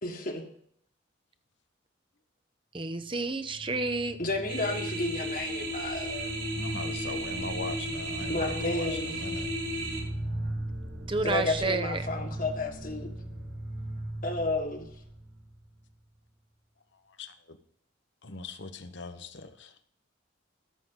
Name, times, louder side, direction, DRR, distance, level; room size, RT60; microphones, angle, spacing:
voice 1, 0.0-0.4 4.2-6.3 8.3-9.1 11.2-13.1 14.2-14.9, left 2 dB, 45° left, 3 dB, 1.5 m, -32 dB
voice 2, 2.7-4.2 11.1-12.1, right 3 dB, 25° right, 9 dB, 0.7 m, -30 dB
sound 1, 3.1-15.9, right 1 dB, 80° right, 3.8 m, -38 dB
sound 2, 4.5-10.0, right 1 dB, 60° right, 3.9 m, -35 dB
voice 3, 6.5-9.9 16.9-17.6 18.2-19.8, left 3 dB, 60° left, 10 dB, 1.0 m, -41 dB
13.5 x 7.6 x 3.9 m, 0.66 s
head